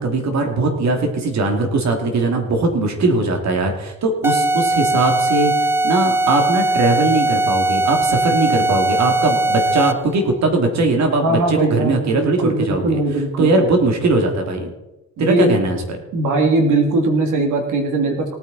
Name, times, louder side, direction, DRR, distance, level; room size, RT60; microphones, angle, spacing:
voice 1, 0.0-13.0 13.4-14.7 15.2-15.8, right 2 dB, 65° right, 3 dB, 2.8 m, -19 dB
sound 1, 4.2-10.1, right 2 dB, 10° right, 0.3 m, -19 dB
voice 2, 11.2-13.5 15.2-15.6 16.1-18.4, right 2 dB, 80° right, 2 dB, 2.9 m, -20 dB
18.0 x 9.3 x 4.3 m, 1.0 s
cardioid pair, 90°, 30 cm